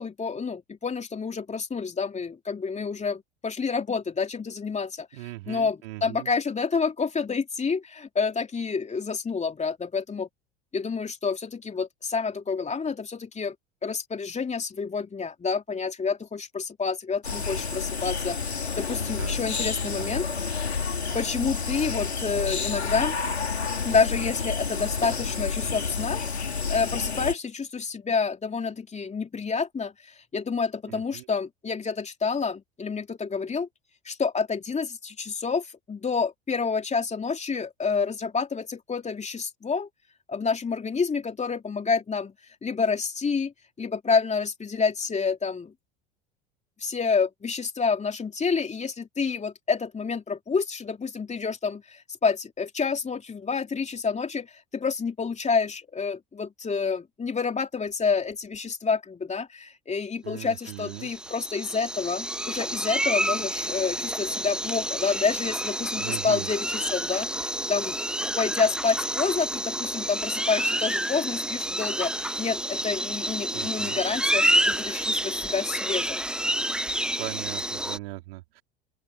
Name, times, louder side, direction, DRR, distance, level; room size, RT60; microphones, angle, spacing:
voice 1, 0.0-10.3 10.7-13.5 13.8-20.3 21.1-23.2 23.8-33.7 34.0-39.9 40.3-42.3 42.6-45.7 46.8-68.0 68.4-76.2, left 5 dB, 20° left, 3.3 m, -28 dB
voice 2, 5.1-6.3 19.2-19.4 19.8-20.4 30.9-31.2 60.2-61.1 66.0-66.5 73.5-74.0 77.2-78.6, right 19 dB, 65° right, 5.0 m, -39 dB
sound 1, 17.2-27.3, left 5 dB, 85° left, 3.7 m, -30 dB
sound 2, 60.7-78.0, right 1 dB, 5° right, 1.4 m, -29 dB
open air
figure-of-eight pair, 70°, 32 cm